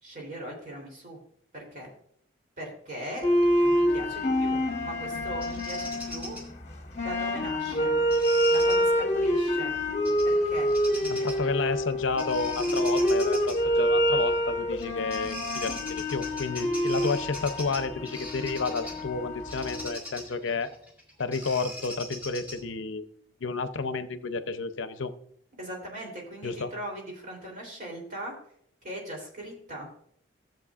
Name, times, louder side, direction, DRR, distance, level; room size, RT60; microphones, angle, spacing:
voice 1, 0.0-1.2 1.5-1.9 2.6-3.3 3.6-6.4 7.0-8.0 8.5-9.7 10.2-10.7 11.0-11.3 11.6-11.7 25.6-28.3 28.8-30.0, right 1 dB, 40° right, 0 dB, 3.3 m, -40 dB
sound 1, 3.2-19.9, equal, 35° left, 1.0 m, -27 dB
Bird vocalization bird call bird song, 5.4-6.4 8.1-8.8 10.0-10.4 10.7-11.5 12.2-13.6 14.8-14.9 15.1-19.0 19.5-22.8, left 1 dB, 10° right, 2.1 m, -41 dB
voice 2, 11.1-20.7 21.2-23.1 23.4-25.1 26.4-26.7, left 4 dB, 75° left, 11 dB, 0.6 m, -31 dB
15.0 x 7.6 x 2.4 m, 0.68 s
head